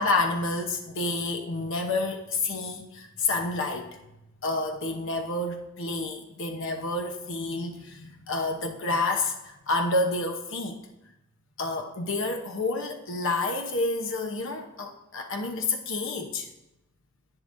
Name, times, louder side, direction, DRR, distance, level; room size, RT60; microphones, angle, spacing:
voice 1, 0.0-4.0 4.4-10.8 11.6-16.5, left 2 dB, 60° left, 3 dB, 0.9 m, -29 dB
11.0 x 9.8 x 2.6 m, 0.89 s
head